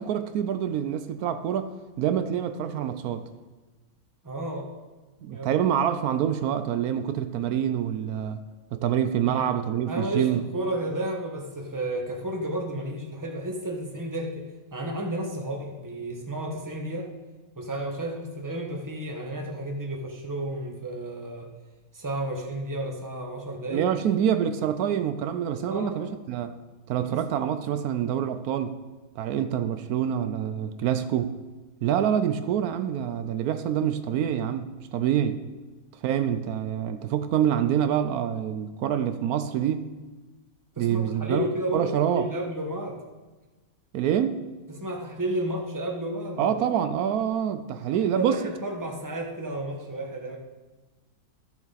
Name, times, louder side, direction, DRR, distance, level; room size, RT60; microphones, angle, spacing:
voice 1, 0.0-3.2 5.2-8.4 8.7-10.4 23.7-26.6 26.9-28.8 29.2-31.3 31.8-35.4 36.0-39.9 40.8-42.3 43.9-44.4 46.4-48.4, right 9 dB, 80° right, 10 dB, 1.1 m, -26 dB
voice 2, 4.2-4.7 5.3-5.6 9.3-9.6 9.9-17.1 17.6-21.5 21.9-23.9 25.7-26.0 27.0-27.2 40.7-43.0 44.7-46.6 47.9-50.4, right 1 dB, 15° right, 1 dB, 1.2 m, -32 dB
13.0 x 7.1 x 4.1 m, 1.2 s
omnidirectional pair, 1.6 m